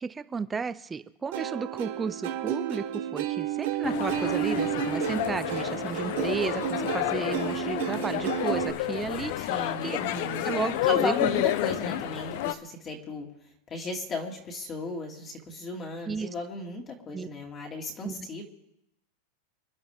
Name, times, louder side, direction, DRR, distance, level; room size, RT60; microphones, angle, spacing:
voice 1, 0.0-9.5 9.8-10.0 10.4-11.3 16.1-16.3 17.1-17.3 18.0-18.4, right 5 dB, 10° right, 13 dB, 0.5 m, -33 dB
Plucked string instrument, 1.3-8.7, right 11 dB, 65° right, 1.5 m, -31 dB
sound 1, 3.8-12.5, left 13 dB, 55° left, 0.8 m, -30 dB
voice 2, 9.5-10.5 10.8-13.3 13.7-18.4, left 3 dB, 20° left, 0 dB, 2.2 m, -35 dB
27.0 x 11.5 x 3.6 m, 0.81 s
supercardioid pair, 160°, 0 cm